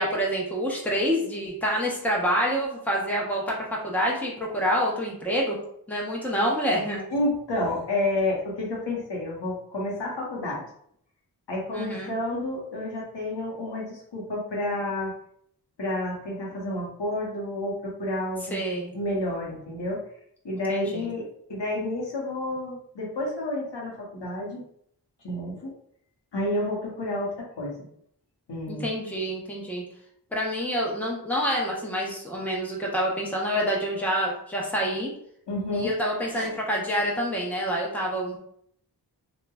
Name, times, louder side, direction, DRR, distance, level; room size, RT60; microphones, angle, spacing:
voice 1, 0.0-5.6 5.9-7.0 11.7-12.1 18.5-18.9 20.7-21.1 28.7-29.8 30.3-35.1 35.7-38.4, equal, 5° left, -3 dB, 0.7 m, -27 dB
voice 2, 7.1-10.6 11.5-15.1 15.8-18.6 18.9-20.0 20.4-24.6 25.2-25.7 26.3-27.7 28.5-28.8 35.5-35.9 36.3-36.5, left 1 dB, 80° left, -3 dB, 0.9 m, -30 dB
3.1 x 2.1 x 2.2 m, 0.68 s
wide cardioid pair, 50°, 42 cm